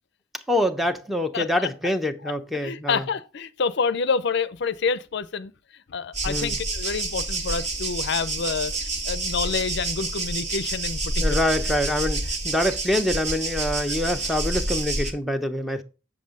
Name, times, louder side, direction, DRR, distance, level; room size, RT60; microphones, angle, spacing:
voice 1, 0.5-3.0 6.3-6.5 11.2-15.8, left 1 dB, ahead, 0.7 m, -25 dB
voice 2, 1.3-1.7 2.2-11.4 13.9-14.0, left 5 dB, 65° left, 0.5 m, -28 dB
sound 1, 6.1-15.1, right 2 dB, 35° right, 1.5 m, -28 dB
7.4 x 7.1 x 3.7 m
head